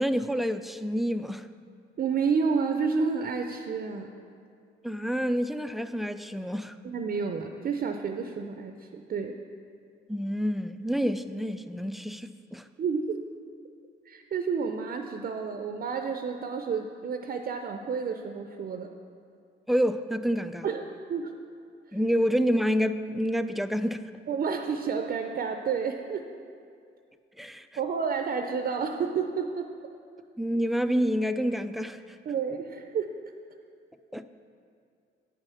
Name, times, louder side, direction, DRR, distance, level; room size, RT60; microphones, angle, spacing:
voice 1, 0.0-1.5 4.8-6.8 10.1-12.6 19.7-20.7 21.9-24.1 27.4-27.7 30.4-32.2 34.1-34.2, equal, ahead, 10 dB, 0.3 m, -28 dB
voice 2, 2.0-4.1 6.8-9.4 12.8-13.2 14.1-18.9 20.6-20.8 21.1-21.3 24.3-26.2 27.8-29.7 32.3-33.1, right 5 dB, 45° right, 6 dB, 0.6 m, -30 dB
8.8 x 5.6 x 7.0 m, 2.3 s
cardioid pair, 90°, 20 cm